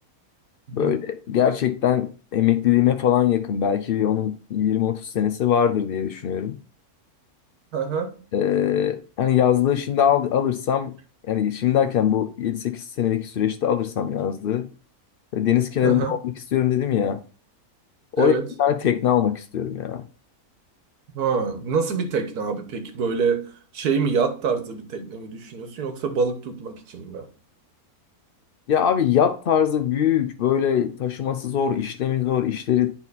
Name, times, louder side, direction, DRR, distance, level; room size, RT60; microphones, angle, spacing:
voice 1, 0.7-6.6 8.3-10.9 11.3-14.7 15.3-16.2 16.5-17.2 18.2-18.3 18.6-20.0 28.7-32.9, left 9 dB, 85° left, 0.5 m, -22 dB
voice 2, 7.7-8.2 15.8-16.2 18.2-18.5 21.1-27.3, right 5 dB, 90° right, 1.6 m, -26 dB
9.0 x 4.0 x 4.0 m
omnidirectional pair, 1.6 m